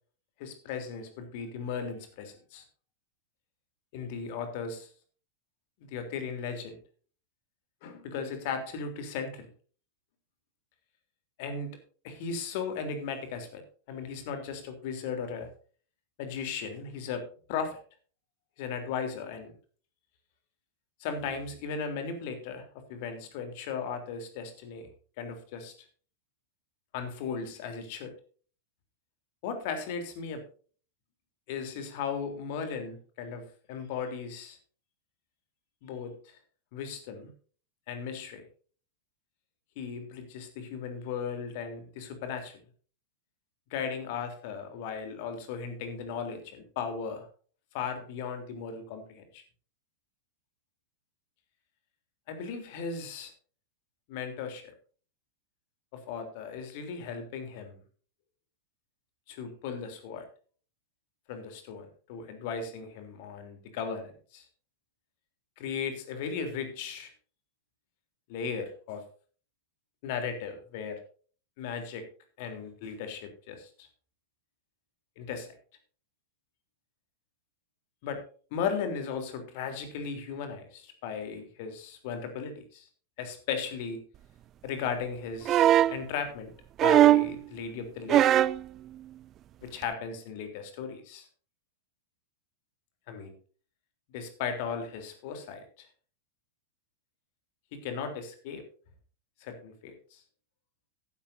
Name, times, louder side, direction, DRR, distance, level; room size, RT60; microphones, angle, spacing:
voice 1, 0.4-2.6 3.9-4.9 5.9-6.8 7.8-9.5 11.4-11.7 12.0-13.6 13.9-15.5 16.2-17.8 18.6-19.5 21.0-22.6 22.9-24.9 25.2-25.7 26.9-28.1 29.4-30.4 31.5-34.6 35.8-36.4 36.7-37.3 37.9-38.4 39.8-42.6 43.7-47.3 47.7-49.4 52.3-53.3 54.1-54.7 55.9-57.8 59.3-60.3 61.3-64.5 65.6-67.1 68.3-69.0 70.0-71.0 71.6-72.0 72.4-73.9 75.2-75.5 78.0-78.2 78.5-82.9 83.2-84.0 84.6-86.5 86.8-88.3 89.6-91.3 93.1-93.3 94.1-95.9 97.7-98.6 99.4-100.2, left 6 dB, 50° left, 6 dB, 3.4 m, -36 dB
sound 1, 85.4-86.0 86.8-87.3 88.1-88.6 89.8-89.9, right 12 dB, 30° right, 0.5 m, -20 dB
14.5 x 12.0 x 2.7 m, 0.41 s
figure-of-eight pair, 90°, 0 cm